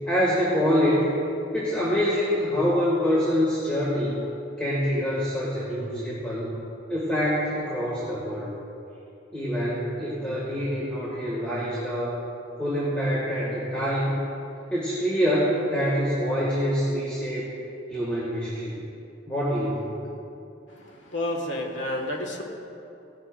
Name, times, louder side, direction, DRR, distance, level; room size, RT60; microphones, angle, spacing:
voice 1, 0.1-1.1 1.5-4.2 4.6-6.5 6.9-8.5 9.3-12.2 12.6-14.2 14.7-17.5 17.9-18.8 19.3-20.0, equal, 5° left, -8 dB, 1.9 m, -25 dB
voice 2, 21.1-22.4, left 1 dB, 85° left, 0 dB, 1.7 m, -29 dB
17.5 x 11.0 x 2.5 m, 2.7 s
head